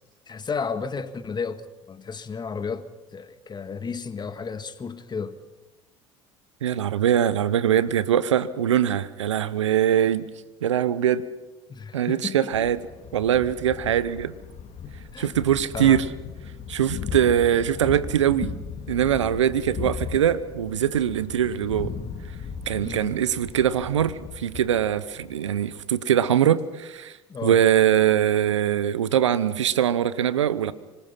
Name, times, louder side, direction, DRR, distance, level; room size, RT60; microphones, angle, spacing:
voice 1, 0.3-1.6 1.9-5.4 11.7-12.7 15.1-15.3 15.7-16.0 22.8-23.1 27.3-27.6, left 5 dB, 30° left, 1.7 m, -33 dB
voice 2, 6.6-10.3 10.6-11.2 11.9-12.8 13.1-14.3 15.2-16.1 16.7-18.6 18.9-21.9 22.7-27.2 27.4-30.7, right 10 dB, 90° right, 0.8 m, -22 dB
Thunder, 12.5-25.8, left 6 dB, 45° left, 2.5 m, -37 dB
25.5 x 20.0 x 5.8 m
hypercardioid pair, 65°, 15 cm